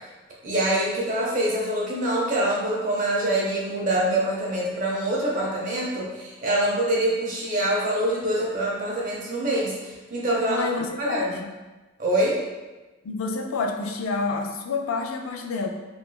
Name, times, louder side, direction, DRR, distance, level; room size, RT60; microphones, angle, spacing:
voice 1, 0.4-10.7 11.0-11.2 12.0-12.4, right 1 dB, 40° right, -4 dB, 0.7 m, -25 dB
voice 2, 10.5-11.5 13.0-15.7, left 4 dB, 85° left, 3 dB, 0.4 m, -28 dB
3.5 x 2.5 x 2.2 m, 1.2 s
head